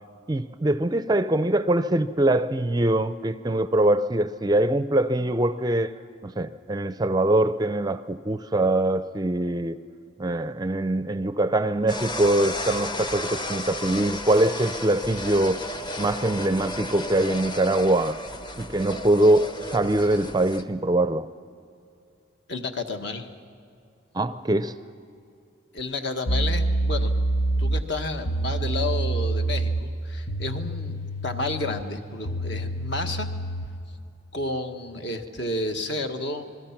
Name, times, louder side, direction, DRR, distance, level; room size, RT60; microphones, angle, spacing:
voice 1, 0.3-5.9 6.2-9.8 10.2-15.6 16.0-18.2 18.6-21.3 24.1-24.8, right 1 dB, 20° right, 12 dB, 0.5 m, -23 dB
sound 1, 11.9-20.6, left 1 dB, 20° left, 0.8 m, -33 dB
voice 2, 22.5-23.3 25.7-27.1 27.6-31.0 31.2-33.3 34.3-36.5, left 2 dB, 60° left, 5 dB, 1.5 m, -31 dB
sound 2, 25.8-25.9 26.3-33.8, right 2 dB, 75° left, 1.0 m, -27 dB
27.5 x 21.5 x 5.9 m, 2.5 s
head